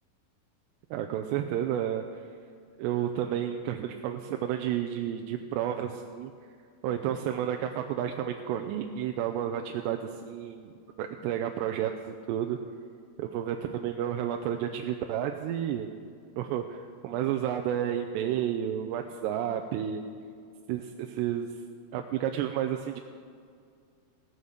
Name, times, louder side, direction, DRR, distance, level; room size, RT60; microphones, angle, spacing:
voice 1, 0.9-2.1 2.8-6.3 6.8-10.7 11.0-12.6 13.2-15.9 16.4-20.0 20.7-21.5 21.9-23.0, right 10 dB, 85° right, 4 dB, 2.8 m, -31 dB
16.5 x 10.5 x 6.6 m, 2.3 s
omnidirectional pair, 4.9 m